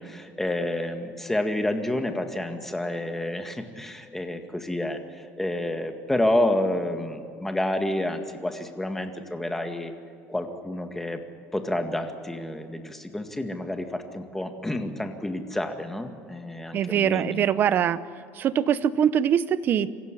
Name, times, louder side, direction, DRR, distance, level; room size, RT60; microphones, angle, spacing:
voice 1, 0.0-9.9 10.3-11.2 11.5-17.5, left 1 dB, 5° left, 5 dB, 2.0 m, -29 dB
voice 2, 16.7-18.0 18.4-19.9, right 9 dB, 45° right, 15 dB, 0.9 m, -23 dB
25.5 x 15.5 x 10.0 m, 2.3 s
cardioid pair, 135°, 5 cm